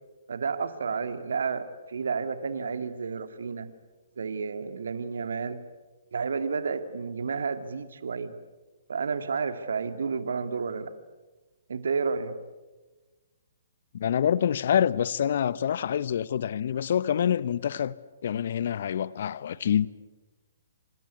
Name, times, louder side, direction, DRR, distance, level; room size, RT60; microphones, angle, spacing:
voice 1, 0.3-3.7 4.2-5.6 6.1-8.3 8.9-10.9 11.7-12.4, right 5 dB, 65° right, 2.2 m, -31 dB
voice 2, 13.9-17.9 18.2-19.9, left 9 dB, 55° left, 1.0 m, -26 dB
26.5 x 26.0 x 8.4 m
figure-of-eight pair, 125°, 0 cm